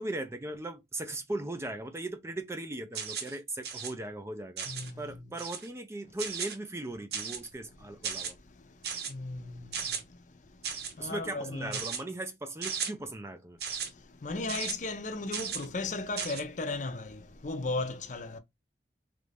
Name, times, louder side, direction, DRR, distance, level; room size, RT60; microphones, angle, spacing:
voice 1, 0.0-4.7 5.0-8.4 11.0-13.6, right 2 dB, 15° right, 0.4 m, -38 dB
sound 1, 2.9-3.4 3.6-3.9 4.6-4.9 5.4-5.7 6.2-6.6 7.1-7.5 8.0-8.3 8.8-9.1 9.7-10.0 10.6-10.9 11.7-12.0 12.6-12.9 13.6-13.9 14.5-14.7 15.3-15.6 16.2-16.4, right 6 dB, 60° right, 0.8 m, -35 dB
voice 2, 4.7-5.0 9.0-10.0 11.0-11.8 13.9-18.4, left 3 dB, 45° left, 0.5 m, -36 dB
3.1 x 2.5 x 3.3 m
head